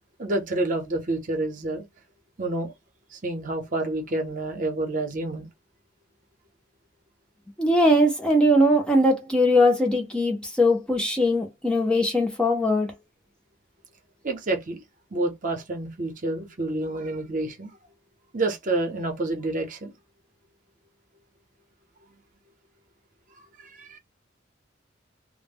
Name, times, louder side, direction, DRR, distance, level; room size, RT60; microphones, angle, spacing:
voice 1, 0.2-1.8 2.4-2.7 3.1-5.5 14.2-14.8 15.1-17.7 18.3-19.9 23.6-24.0, right 2 dB, 40° right, 0.7 m, -28 dB
voice 2, 7.6-12.9, left 1 dB, 5° left, 0.5 m, -20 dB
2.0 x 2.0 x 3.4 m
head